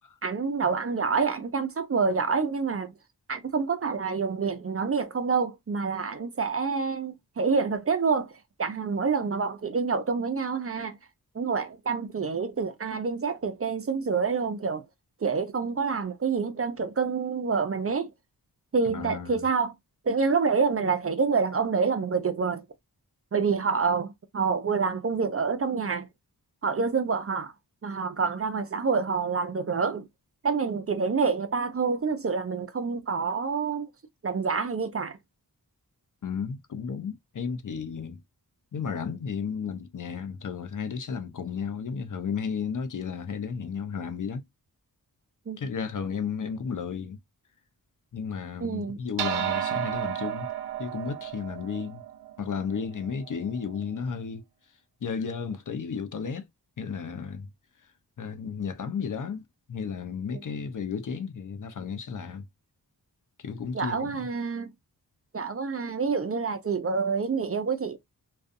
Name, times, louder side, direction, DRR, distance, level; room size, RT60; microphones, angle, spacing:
voice 1, 0.2-2.9 3.3-8.3 8.6-11.0 11.3-14.9 15.2-18.1 18.7-19.7 20.0-22.6 23.3-26.1 26.6-27.5 27.8-30.1 30.4-33.9 34.2-35.2 45.5-45.6 48.6-49.0 63.7-64.7 65.3-68.0, right 5 dB, 35° right, 0.5 m, -27 dB
voice 2, 18.9-19.4 36.2-38.2 38.7-44.4 45.6-47.2 48.1-50.5 50.8-52.0 52.4-54.4 55.0-56.5 56.8-57.5 58.2-59.4 59.7-62.4 63.4-64.2, left 6 dB, 50° left, 0.6 m, -33 dB
sound 1, 49.2-53.8, right 11 dB, 75° right, 0.6 m, -33 dB
2.5 x 2.3 x 2.5 m
cardioid pair, 45°, 40 cm